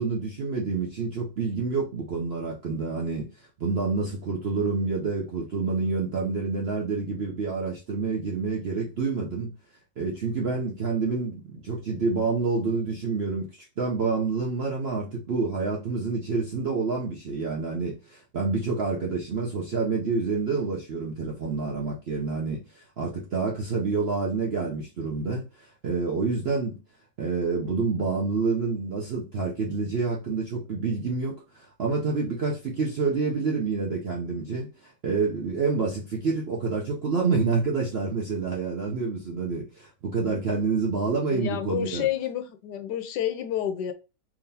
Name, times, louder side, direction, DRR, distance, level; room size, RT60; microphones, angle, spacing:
voice 1, 0.0-3.3 3.6-9.5 10.0-13.5 13.8-25.4 25.8-26.8 27.2-42.1, right 4 dB, 60° right, 0.6 m, -28 dB
voice 2, 41.3-43.9, left 11 dB, 80° left, 1.2 m, -29 dB
3.6 x 2.9 x 2.7 m
omnidirectional pair, 1.8 m